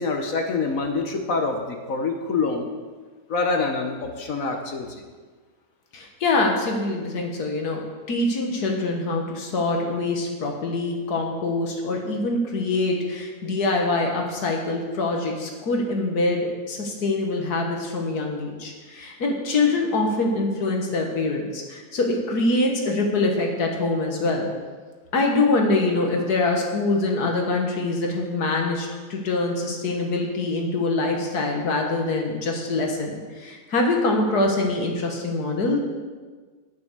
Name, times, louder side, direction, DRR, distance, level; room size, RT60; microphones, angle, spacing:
voice 1, 0.0-2.7 3.3-5.0, left 4 dB, 60° left, 4 dB, 1.4 m, -26 dB
voice 2, 5.9-7.8 8.1-24.5 25.1-35.8, left 2 dB, 80° left, 1 dB, 2.0 m, -24 dB
9.6 x 8.7 x 6.7 m, 1.4 s
omnidirectional pair, 1.6 m